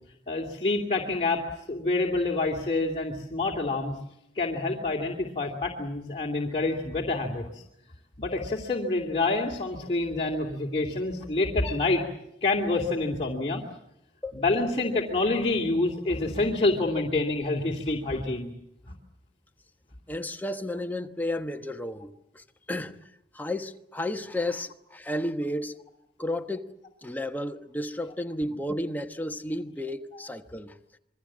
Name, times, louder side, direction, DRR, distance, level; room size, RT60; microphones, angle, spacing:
voice 1, 0.3-1.4 1.7-3.9 4.4-7.6 8.2-12.0 12.4-13.6 14.3-18.5 18.9-19.0, left 2 dB, 35° left, 2.7 m, -27 dB
voice 2, 20.1-23.1 23.3-25.8 26.2-26.7 27.0-30.8, left 1 dB, 10° left, 1.2 m, -32 dB
27.5 x 22.5 x 7.4 m
head